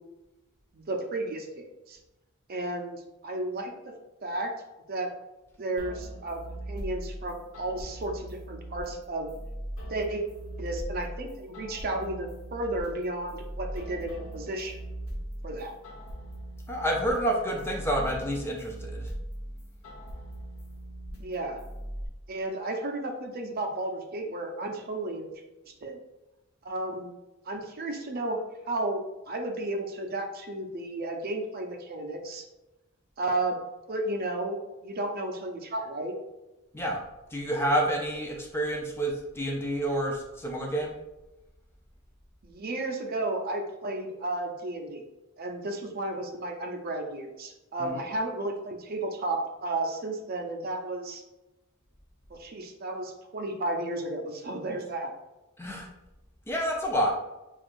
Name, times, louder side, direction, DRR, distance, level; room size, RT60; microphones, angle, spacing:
voice 1, 0.7-2.0 2.5-4.0 4.2-4.5 4.9-5.1 5.6-9.3 9.9-10.2 10.6-14.8 15.4-15.7 21.2-21.6 22.3-25.3 25.7-26.0 26.6-27.1 27.4-32.4 33.2-33.6 33.9-36.1 42.4-45.0 45.4-51.2 52.3-55.2, right 2 dB, 45° right, 3 dB, 0.5 m, -33 dB
sound 1, 5.8-22.1, right 1 dB, 75° left, 1.1 m, -40 dB
voice 2, 16.7-19.1 36.7-37.0 37.3-41.0 47.8-48.0 55.6-55.9 56.5-57.1, right 1 dB, 10° left, 0 dB, 0.4 m, -29 dB
6.0 x 2.4 x 2.5 m, 1.0 s
head